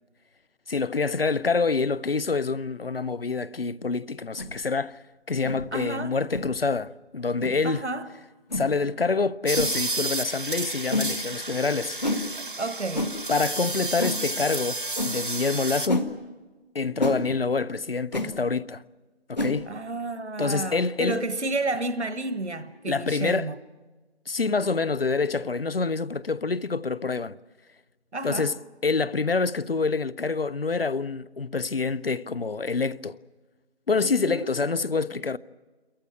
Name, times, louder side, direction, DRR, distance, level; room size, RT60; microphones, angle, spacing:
voice 1, 0.7-5.0 5.3-7.8 8.5-12.0 13.3-16.0 16.7-18.8 19.3-19.7 20.4-21.2 22.8-23.5 24.3-27.4 28.2-28.6 28.8-33.2 33.9-35.4, left 4 dB, 60° left, 0.7 m, -26 dB
sound 1, 4.4-4.5 5.4-5.6 6.3-6.5 7.4-7.5 8.5-8.7 9.5-9.7 10.9-11.1 12.0-12.2 12.9-13.1 14.0-14.2 15.0-15.1 15.9-16.1 17.0-17.2 18.1-18.3 19.3-19.6, left 2 dB, 40° left, 1.7 m, -28 dB
voice 2, 5.7-6.2 7.6-8.1 12.6-13.2 19.6-23.6 28.1-28.5 34.0-34.5, right 2 dB, 85° right, 1.4 m, -31 dB
sound 2, 9.5-15.9, right 2 dB, 50° right, 0.7 m, -31 dB
28.5 x 14.5 x 9.9 m
figure-of-eight pair, 180°, 34 cm